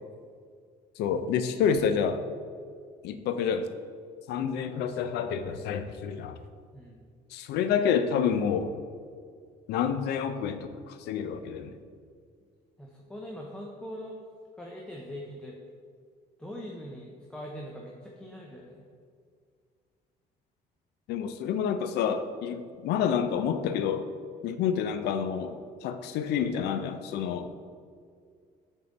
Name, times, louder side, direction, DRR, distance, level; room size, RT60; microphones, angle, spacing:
voice 1, 1.0-2.2 3.0-3.7 4.3-6.4 7.3-8.7 9.7-11.8 21.1-24.1 24.4-27.5, left 7 dB, 80° left, 10 dB, 0.4 m, -28 dB
voice 2, 6.7-7.0 12.8-14.2 14.5-15.6 16.4-18.9, equal, 5° left, -2 dB, 0.6 m, -42 dB
6.9 x 3.7 x 3.9 m, 2.1 s
cardioid pair, 110°, 17 cm